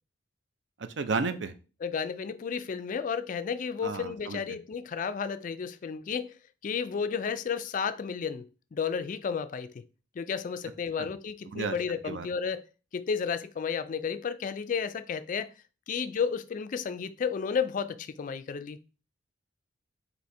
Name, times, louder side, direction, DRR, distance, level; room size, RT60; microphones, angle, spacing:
voice 1, 0.8-1.5 3.8-4.6 11.0-11.1 11.5-11.8 12.0-12.3, right 4 dB, 65° right, 0.5 m, -33 dB
voice 2, 1.8-9.8 10.2-12.6 12.9-15.5 15.9-18.8, left 6 dB, 40° left, 0.3 m, -32 dB
4.6 x 2.8 x 4.2 m
head